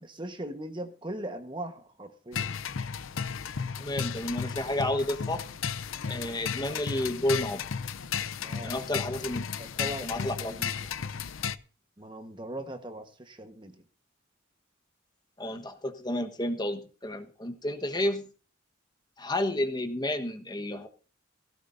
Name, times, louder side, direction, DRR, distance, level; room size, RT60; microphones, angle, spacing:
voice 1, 0.0-2.6 8.4-8.8 9.6-10.8 12.0-13.8, right 1 dB, 25° right, 1.3 m, -40 dB
sound 1, 2.3-11.6, left 7 dB, 85° left, 0.6 m, -34 dB
voice 2, 3.8-5.4 6.1-7.6 8.6-9.4 10.0-10.5 15.4-18.3 19.2-20.9, left 1 dB, 20° left, 1.2 m, -31 dB
16.5 x 16.5 x 2.6 m
head